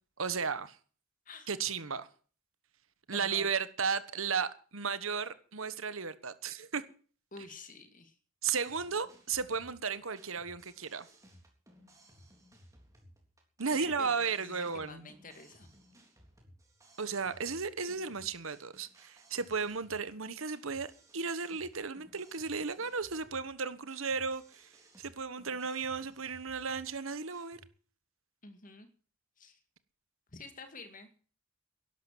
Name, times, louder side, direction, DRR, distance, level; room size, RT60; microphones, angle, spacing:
voice 1, 0.2-0.8 1.5-2.1 3.1-6.8 8.4-11.1 13.6-15.1 17.0-24.7 25.0-27.6, right 5 dB, 75° right, 1.3 m, -34 dB
voice 2, 3.1-3.5 7.3-8.2 13.7-15.7 28.4-28.9 29.4-29.6 30.3-31.1, left 3 dB, 40° left, 2.2 m, -49 dB
sound 1, 8.6-27.7, equal, 15° right, 3.6 m, -60 dB
12.0 x 11.5 x 7.5 m
head